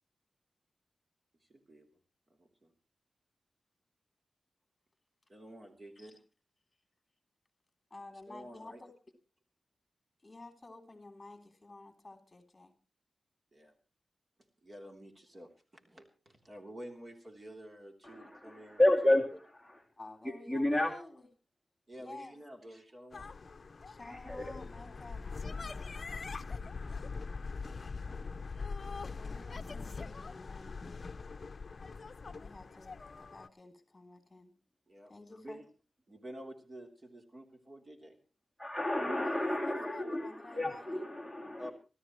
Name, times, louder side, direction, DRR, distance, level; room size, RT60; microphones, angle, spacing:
voice 1, 1.4-1.9 2.3-2.7 5.3-6.1 8.3-8.8 13.5-13.7 14.6-19.4 21.9-23.3 30.9-31.1 34.9-35.7 36.1-38.2 41.6-41.7, equal, 35° right, 3 dB, 3.2 m, -50 dB
voice 2, 7.9-8.9 10.2-12.7 20.0-21.3 22.0-22.4 23.9-25.7 28.8-30.9 32.4-34.6 35.1-35.6 39.1-41.0, left 2 dB, 25° left, 6 dB, 3.2 m, -51 dB
voice 3, 18.1-19.3 20.5-20.9 24.1-24.4 38.6-41.7, left 1 dB, 10° right, 2 dB, 2.7 m, -30 dB
sound 1, 23.1-33.5, left 4 dB, 50° left, 0.7 m, -42 dB
26.0 x 13.5 x 3.1 m, 0.33 s
wide cardioid pair, 80°, 0 cm